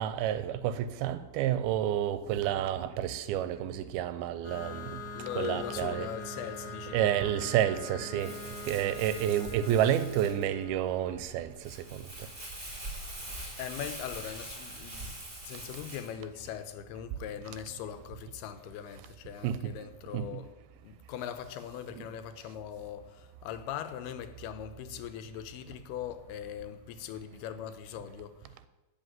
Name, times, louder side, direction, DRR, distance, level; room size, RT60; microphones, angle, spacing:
voice 1, 0.0-5.0 5.4-6.1 6.9-8.3 8.7-12.1 19.4-19.8 20.1-20.4 22.0-22.1, right 11 dB, 85° right, 2.5 m, -30 dB
sound 1, 4.4-11.8, left 1 dB, 5° left, 3.8 m, -43 dB
voice 2, 5.1-7.3 13.6-15.2 15.4-20.5 20.8-28.5, left 9 dB, 85° left, 2.8 m, -40 dB
Crumpling crinkling, 8.2-16.1, right 1 dB, 15° right, 3.9 m, -43 dB
13.0 x 5.8 x 9.2 m
omnidirectional pair, 4.4 m